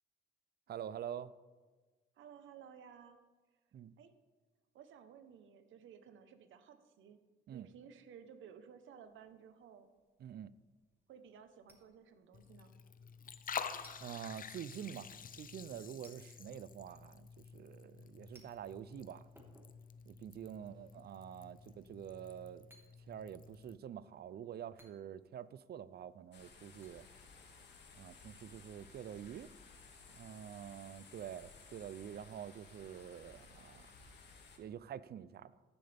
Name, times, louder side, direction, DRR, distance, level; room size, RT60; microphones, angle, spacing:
voice 1, 0.7-1.3 3.7-3.9 7.5-7.7 10.2-10.5 14.0-19.2 20.1-22.7 23.1-27.0 27.9-29.5 30.1-33.9 34.6-35.5, right 9 dB, 55° right, 17 dB, 0.5 m, -47 dB
voice 2, 2.2-3.2 4.0-4.1 4.7-7.2 7.5-9.9 11.1-12.7, right 7 dB, 75° right, 9 dB, 1.1 m, -56 dB
sound 1, 8.9-28.2, right 1 dB, 10° right, 2.4 m, -71 dB
Liquid, 12.3-23.8, left 7 dB, 45° left, 0.7 m, -49 dB
sound 2, 26.3-34.6, left 4 dB, 60° left, 2.2 m, -58 dB
14.5 x 10.0 x 3.6 m, 1.3 s
cardioid pair, 90°, 20 cm